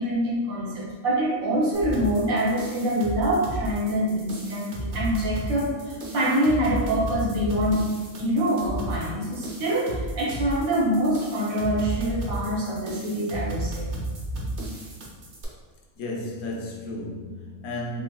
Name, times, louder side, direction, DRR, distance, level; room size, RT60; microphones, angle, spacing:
voice 1, 0.0-7.8 8.2-13.9, right 1 dB, 75° right, 1.4 m, -25 dB
sound 1, 1.7-15.4, right 1 dB, 50° right, 0.7 m, -33 dB
voice 2, 16.0-18.0, left 1 dB, 85° left, 1.1 m, -33 dB
3.9 x 2.9 x 2.2 m
omnidirectional pair, 1.5 m